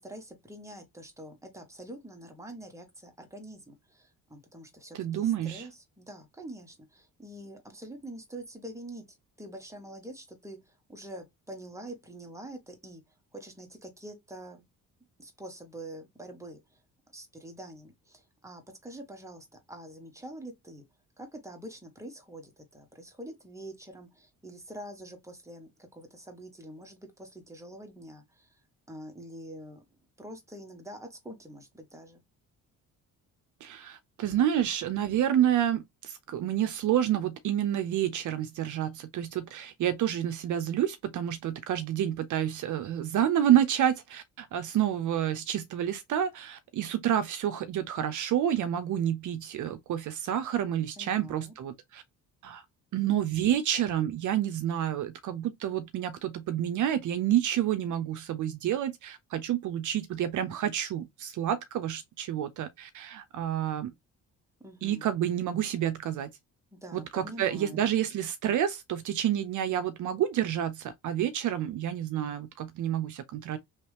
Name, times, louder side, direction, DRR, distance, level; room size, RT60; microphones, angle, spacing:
voice 1, 0.0-13.0 13.3-14.6 15.2-16.6 17.1-20.8 21.2-28.5 28.9-29.8 30.2-32.2 51.0-51.5 64.6-65.1 66.7-67.9, right 1 dB, 10° right, 1.4 m, -45 dB
voice 2, 4.9-5.7 33.6-52.0 52.4-52.6 52.9-63.9 64.8-66.3 66.9-73.6, right 11 dB, 60° right, 0.6 m, -29 dB
3.1 x 2.9 x 3.3 m
cardioid pair, 80°, 34 cm